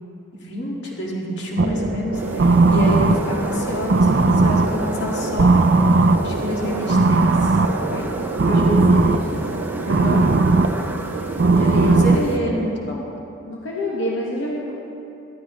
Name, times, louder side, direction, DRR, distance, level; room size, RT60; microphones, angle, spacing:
voice 1, 0.3-5.7 6.2-7.6 7.9-8.1 8.8-9.0 9.9-10.2 11.5-13.1, left 1 dB, 60° left, -3 dB, 2.0 m, -27 dB
sound 1, 1.6-12.7, right 3 dB, 60° right, 0.5 m, -18 dB
sound 2, 2.1-12.4, right 1 dB, 10° right, 0.5 m, -34 dB
voice 2, 8.5-9.6 11.7-11.9 13.4-14.7, left 1 dB, 80° left, -5 dB, 1.5 m, -28 dB
15.5 x 12.5 x 3.1 m, 2.8 s
head